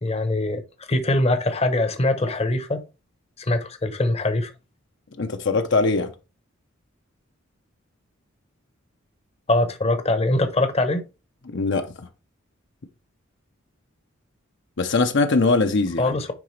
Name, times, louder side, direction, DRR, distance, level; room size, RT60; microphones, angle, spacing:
voice 1, 0.0-2.8 3.4-4.5 9.5-11.0 16.0-16.3, left 2 dB, 30° left, 0.9 m, -23 dB
voice 2, 5.2-6.1 11.5-12.1 14.8-16.2, left 3 dB, 60° left, 0.8 m, -21 dB
9.8 x 3.9 x 3.2 m
head